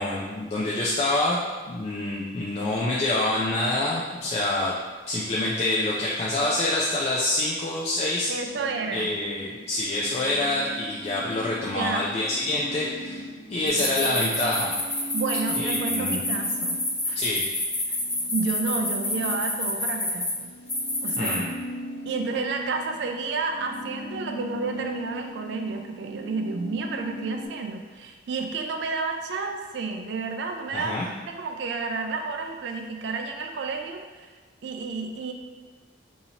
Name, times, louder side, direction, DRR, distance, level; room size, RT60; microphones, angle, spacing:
voice 1, 0.0-1.4 1.7-4.7 5.1-8.3 8.9-13.2 13.5-15.0 15.5-16.2 17.2-17.4 21.2-21.5 30.7-31.1, left 2 dB, 35° left, -5 dB, 0.3 m, -26 dB
voice 2, 8.3-9.1 11.8-12.0 15.1-16.8 17.0-17.2 17.9-18.0 18.3-20.5 21.0-21.5 22.0-31.0 31.3-34.3 34.6-35.3, right 4 dB, 60° right, 4 dB, 0.3 m, -31 dB
sound 1, 8.5-17.3 17.7-27.5, left 1 dB, 70° left, 0.6 m, -39 dB
sound 2, 13.7-20.3 20.7-21.4, left 2 dB, 10° left, 1.1 m, -28 dB
4.3 x 2.7 x 2.7 m, 1.3 s
head